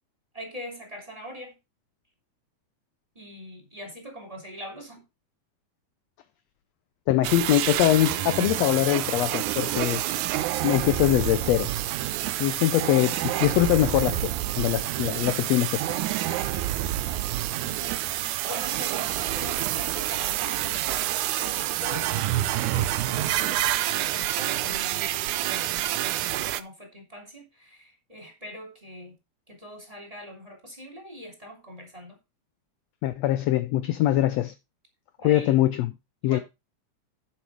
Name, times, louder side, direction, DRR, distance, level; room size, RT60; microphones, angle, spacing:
voice 1, 0.3-1.5 3.1-5.0 17.1-26.1 26.5-29.1 29.5-32.2 35.2-35.6 36.2-36.4, equal, 10° right, 2.9 m, -43 dB
voice 2, 7.1-10.0 10.6-11.7 12.4-15.9 33.0-34.5 35.2-35.9 36.2-36.4, left 14 dB, 75° left, 1.6 m, -23 dB
sound 1, 7.2-26.6, right 14 dB, 80° right, 2.1 m, -28 dB
8.7 x 7.3 x 4.8 m
omnidirectional pair, 3.5 m